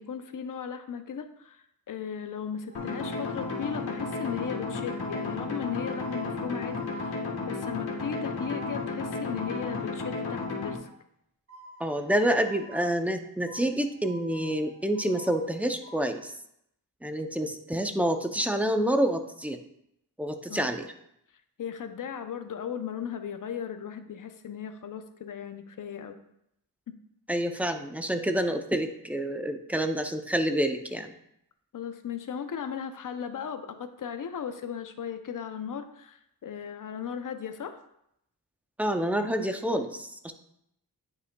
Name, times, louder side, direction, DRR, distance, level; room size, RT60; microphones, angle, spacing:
voice 1, 0.0-10.9 20.5-20.8 21.6-26.2 26.9-27.0 31.7-37.8, left 7 dB, 60° left, 8 dB, 0.6 m, -37 dB
sound 1, 2.7-10.7, left 3 dB, 85° left, 1.3 m, -33 dB
sound 2, 2.7-11.0 11.5-13.2 13.5-16.1, right 1 dB, 40° right, 2.3 m, -49 dB
voice 2, 11.8-16.3 17.0-19.6 20.2-20.9 27.3-31.1 38.8-40.3, right 1 dB, 5° right, 6 dB, 0.5 m, -28 dB
9.5 x 5.5 x 2.2 m, 0.77 s
wide cardioid pair, 110°, 37 cm